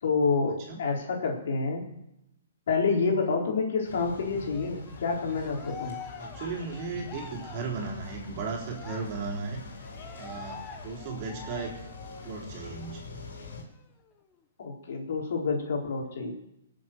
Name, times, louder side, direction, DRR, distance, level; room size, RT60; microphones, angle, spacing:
voice 1, 0.0-1.8 2.7-6.0 14.6-16.3, left 4 dB, 60° left, 0 dB, 4.1 m, -28 dB
sound 1, 3.8-13.6, left 3 dB, 80° left, 4.5 m, -45 dB
Cheering, 4.4-12.4 12.8-13.0 13.3-14.3, left 7 dB, 15° left, 1.3 m, -46 dB
voice 2, 6.2-9.6 10.2-11.7 12.2-13.0, right 4 dB, 35° right, -1 dB, 3.8 m, -35 dB
21.0 x 7.9 x 7.8 m, 0.85 s
hypercardioid pair, 160°, 0 cm